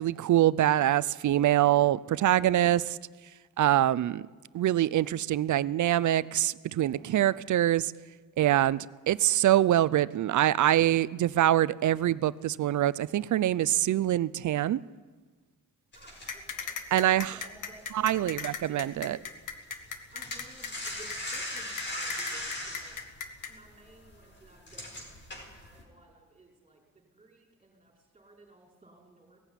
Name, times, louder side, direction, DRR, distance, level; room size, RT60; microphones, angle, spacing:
voice 1, 0.0-3.0 3.6-4.2 4.5-7.9 8.4-14.8 16.9-17.4 17.9-19.2, right 13 dB, 65° right, 0.6 m, -24 dB
sound 1, 15.9-18.7 18.9-19.2 19.5-25.8, left 1 dB, 35° left, 4.7 m, -39 dB
voice 2, 16.0-19.3 20.1-23.0 23.5-25.1 25.3-29.4, right 2 dB, 15° right, 5.5 m, -56 dB
sound 2, 16.3-23.5, left 7 dB, 70° left, 1.8 m, -37 dB
18.0 x 15.5 x 9.9 m
wide cardioid pair, 140°, 32 cm